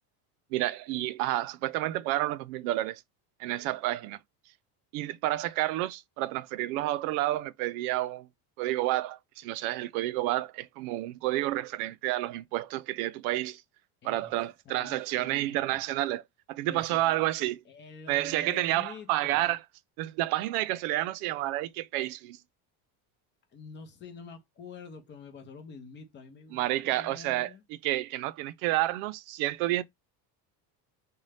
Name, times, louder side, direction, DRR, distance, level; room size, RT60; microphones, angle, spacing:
voice 1, 0.5-3.0 3.4-4.2 4.9-8.3 8.6-13.6 14.0-16.2 16.5-17.6 18.1-19.6 20.0-22.4 26.5-27.5 27.8-29.8, right 16 dB, 85° right, 0.5 m, -30 dB
voice 2, 14.0-14.4 14.7-15.8 16.6-17.2 17.7-19.5 23.5-27.6, left 5 dB, 25° left, 0.6 m, -47 dB
2.7 x 2.2 x 3.2 m
cardioid pair, 155°, 43 cm